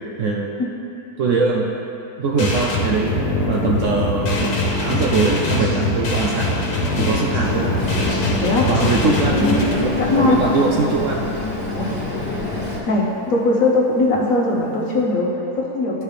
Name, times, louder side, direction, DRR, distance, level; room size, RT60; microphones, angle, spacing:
voice 1, 0.2-0.5 1.2-1.7 2.2-4.5 4.8-6.6 6.9-7.7 8.7-9.5 9.7-11.3, right 4 dB, 65° right, -1 dB, 0.8 m, -21 dB
sound 1, 2.4-9.7, left 2 dB, 90° left, 1.6 m, -22 dB
Boat Water vehicle, 7.4-12.8, left 2 dB, 45° left, 1.9 m, -27 dB
voice 2, 8.4-8.7 10.0-10.4 11.7-11.9 12.9-16.0, left 2 dB, 60° left, -3 dB, 1.4 m, -19 dB
Guitar, 9.3-13.8, left 2 dB, 20° left, 1.2 m, -28 dB
12.0 x 4.6 x 3.4 m, 2.8 s
omnidirectional pair, 1.7 m